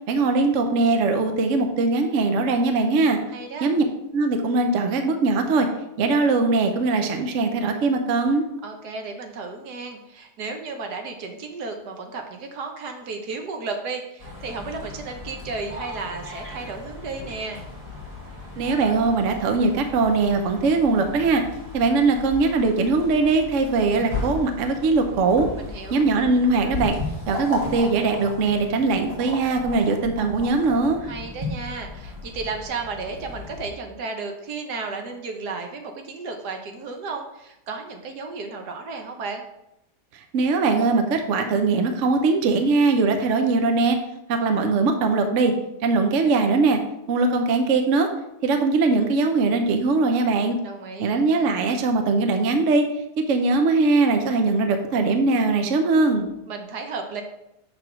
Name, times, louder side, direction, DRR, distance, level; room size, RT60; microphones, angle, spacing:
voice 1, 0.1-3.2 3.6-3.9 4.1-5.7 6.0-8.4 18.6-21.4 21.7-25.5 25.9-26.9 27.3-31.0 40.3-44.0 44.3-45.5 45.8-46.8 47.1-48.1 48.4-50.6 51.0-52.9 53.2-56.3, right 3 dB, 60° right, 5 dB, 0.9 m, -21 dB
voice 2, 3.3-3.7 8.6-17.6 25.6-26.1 31.0-39.4 50.6-51.2 56.5-57.2, right 4 dB, 75° right, 4 dB, 1.4 m, -33 dB
sound 1, 14.2-33.7, left 2 dB, 20° right, 1.6 m, -36 dB
6.9 x 3.5 x 6.0 m, 0.85 s
omnidirectional pair, 1.8 m